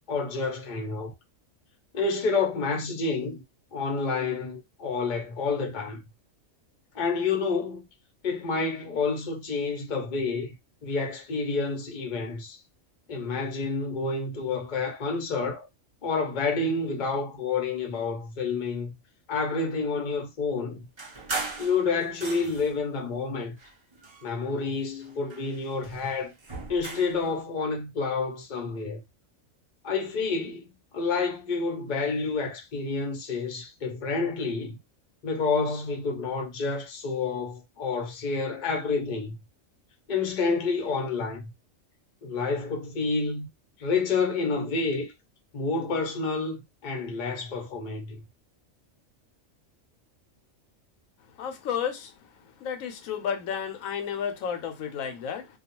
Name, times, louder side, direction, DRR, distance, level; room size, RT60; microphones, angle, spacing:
voice 1, 0.1-1.1 1.9-3.4 3.7-6.0 6.9-7.8 8.2-10.5 10.8-12.6 13.1-15.7 16.0-18.9 19.3-20.8 21.6-23.6 24.2-26.3 26.7-29.0 29.8-30.7 30.9-34.8 35.2-39.4 40.1-41.5 42.2-43.5 43.8-45.1 45.5-48.2, left 4 dB, 45° left, 0.7 m, -29 dB
sound 1, 21.0-22.8 23.5-24.7 25.0-27.2, right 3 dB, 35° right, 0.5 m, -38 dB
voice 2, 51.4-52.1 52.6-55.5, left 7 dB, 90° left, 1.0 m, -32 dB
2.3 x 2.3 x 2.8 m
omnidirectional pair, 1.4 m